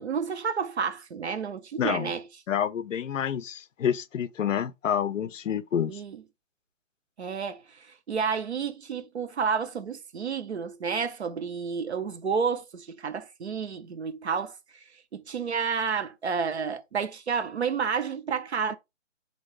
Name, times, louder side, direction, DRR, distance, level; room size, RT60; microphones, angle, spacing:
voice 1, 0.0-2.2 5.9-6.2 7.2-14.5 15.1-18.8, right 6 dB, 60° right, 0.5 m, -30 dB
voice 2, 1.8-2.1 2.5-6.0, left 8 dB, 80° left, 0.5 m, -28 dB
2.8 x 2.6 x 3.0 m
hypercardioid pair, 175°, 38 cm